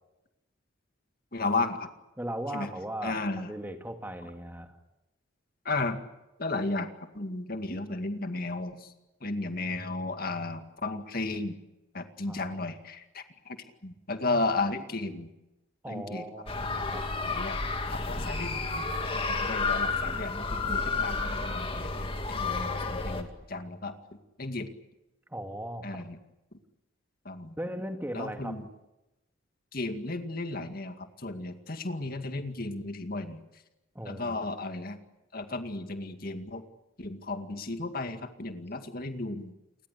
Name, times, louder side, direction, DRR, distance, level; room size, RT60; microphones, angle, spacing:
voice 1, 1.3-1.9 2.5-2.7 3.0-3.5 5.7-6.0 6.4-8.9 9.2-11.5 11.9-15.3 15.9-16.2 17.2-17.6 17.9-23.9 24.4-24.7 25.8-26.2 27.3-27.5 28.1-28.6 29.7-33.4 34.1-35.0 35.3-36.6 37.0-39.5, left 2 dB, 45° left, 7 dB, 2.2 m, -34 dB
voice 2, 2.2-4.8 12.3-12.5 15.8-17.1 25.3-26.0 27.6-28.6 33.9-34.4, right 1 dB, 10° right, 5 dB, 2.3 m, -38 dB
sound 1, 16.5-23.2, left 3 dB, 25° left, 2.4 m, -31 dB
29.0 x 21.0 x 8.4 m, 0.97 s
head